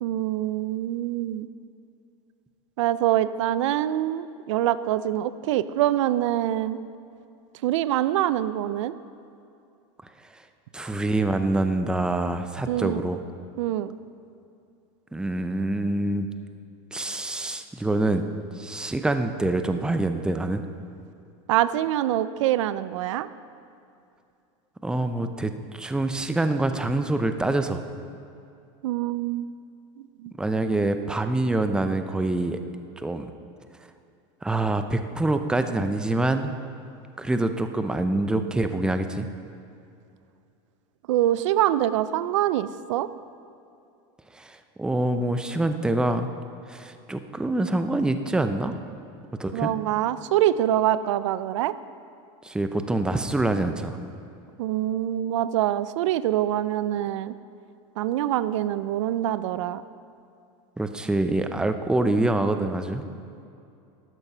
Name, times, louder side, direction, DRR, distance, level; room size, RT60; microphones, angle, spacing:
voice 1, 0.0-1.5 2.8-6.8 7.6-8.9 12.7-13.0 13.6-13.9 21.5-23.3 28.8-29.4 30.0-30.3 41.1-43.1 49.5-51.7 54.6-57.3 58.0-59.8, right 12 dB, 85° right, 15 dB, 0.5 m, -25 dB
voice 2, 10.7-13.2 15.1-16.3 16.9-18.3 18.5-20.6 24.8-27.8 30.4-32.6 33.0-33.3 34.4-36.5 37.2-39.3 44.3-46.3 46.7-48.7 49.4-49.7 52.4-54.0 60.8-63.0, right 2 dB, 5° right, 8 dB, 0.6 m, -25 dB
12.5 x 8.9 x 5.5 m, 2.6 s
supercardioid pair, 135°, 15 cm